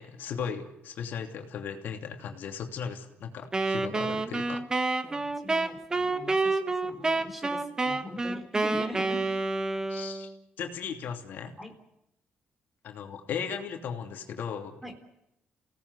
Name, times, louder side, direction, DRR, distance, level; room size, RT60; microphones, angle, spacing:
voice 1, 0.0-4.6 9.9-10.3 10.6-11.5 12.8-14.8, left 7 dB, 70° left, 3 dB, 2.8 m, -37 dB
Wind instrument woodwind instrument, 3.5-10.4, right 3 dB, 20° right, 1.5 m, -29 dB
voice 2, 5.0-9.3 11.6-11.8 14.8-14.9, left 1 dB, 5° right, 7 dB, 3.7 m, -42 dB
29.5 x 18.0 x 8.2 m, 0.85 s
cardioid pair, 120°, 3 cm